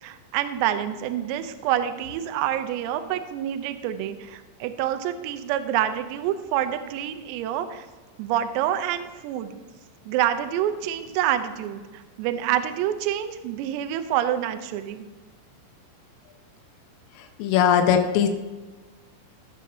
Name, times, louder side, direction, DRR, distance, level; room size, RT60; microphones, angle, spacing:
voice 1, 0.0-7.9 8.2-9.6 10.1-15.1, right 11 dB, 85° right, 9 dB, 2.5 m, -27 dB
voice 2, 17.4-18.3, left 8 dB, 90° left, 5 dB, 3.4 m, -19 dB
16.5 x 7.5 x 2.8 m, 1.3 s
omnidirectional pair, 5.8 m